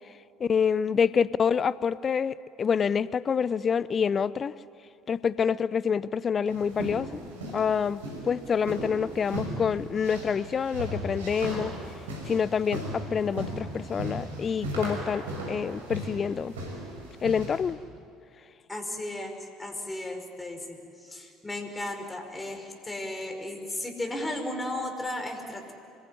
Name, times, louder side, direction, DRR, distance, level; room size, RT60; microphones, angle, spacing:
voice 1, 0.4-4.5 5.1-7.2 7.5-11.7 12.3-16.5 17.2-17.8, left 6 dB, 35° left, 19 dB, 0.6 m, -27 dB
sound 1, 6.5-17.7, right 1 dB, 80° right, 5.7 m, -37 dB
voice 2, 18.7-25.7, left 1 dB, 15° left, 4 dB, 5.4 m, -35 dB
26.0 x 21.5 x 9.9 m, 2.4 s
figure-of-eight pair, 60°, 0 cm